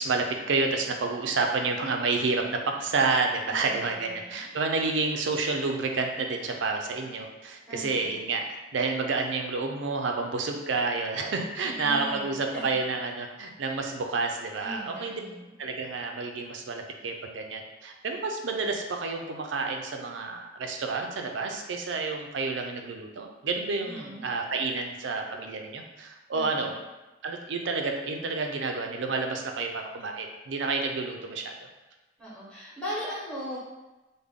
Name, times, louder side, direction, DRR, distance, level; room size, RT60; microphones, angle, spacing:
voice 1, 0.0-8.4 8.7-15.2 15.6-26.7 27.2-31.5, right 3 dB, 85° right, 3 dB, 0.5 m, -29 dB
voice 2, 3.4-4.5 7.7-8.2 11.6-12.3 14.6-15.5 23.8-24.2 26.3-26.8 32.2-33.6, equal, 5° left, -9 dB, 1.1 m, -39 dB
3.5 x 2.1 x 3.6 m, 1.1 s
head